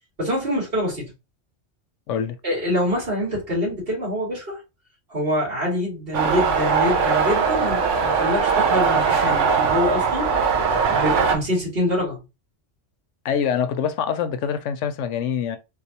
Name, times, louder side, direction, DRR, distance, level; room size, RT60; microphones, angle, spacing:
voice 1, 0.2-1.1 2.4-4.6 5.1-10.3 10.9-12.2, left 1 dB, 50° right, 2.3 m, -25 dB
sound 1, 6.1-11.4, right 5 dB, 90° right, 1.1 m, -20 dB
voice 2, 13.2-15.6, left 7 dB, 85° left, 0.9 m, -25 dB
3.9 x 2.4 x 2.8 m
omnidirectional pair, 1.2 m